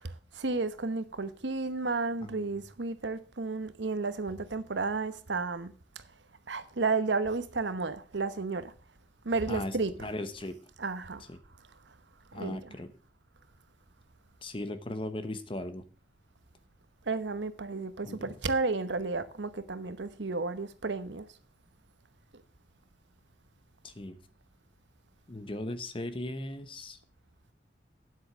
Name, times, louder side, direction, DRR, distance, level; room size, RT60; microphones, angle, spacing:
voice 1, 0.3-6.0 6.5-8.7 9.2-9.9 10.8-11.2 12.3-12.7 17.1-21.3, right 3 dB, 80° right, 1.0 m, -32 dB
voice 2, 2.2-2.5 9.5-10.6 11.3-11.4 12.3-12.9 14.4-15.8 18.0-18.3 23.8-24.2 25.3-27.0, left 1 dB, 30° left, 0.9 m, -38 dB
9.6 x 8.0 x 6.1 m
head